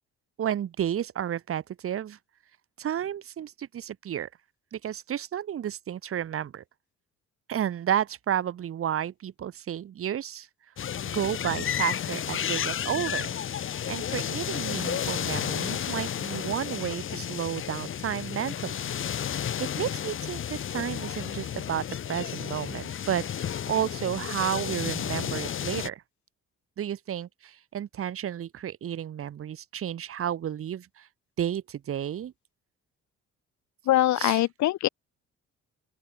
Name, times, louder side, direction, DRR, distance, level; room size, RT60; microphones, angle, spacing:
voice 1, 0.4-2.2 2.8-4.3 4.7-6.6 7.5-10.5 11.0-18.7 19.4-26.0 26.8-31.1 31.4-32.3 34.1-34.4, right 10 dB, 50° right, 1.4 m, -32 dB
sound 1, 10.8-25.9, left 9 dB, 45° left, 1.1 m, -32 dB
voice 2, 33.9-34.9, left 15 dB, 70° left, 1.1 m, -23 dB
open air
cardioid pair, 120°, 29 cm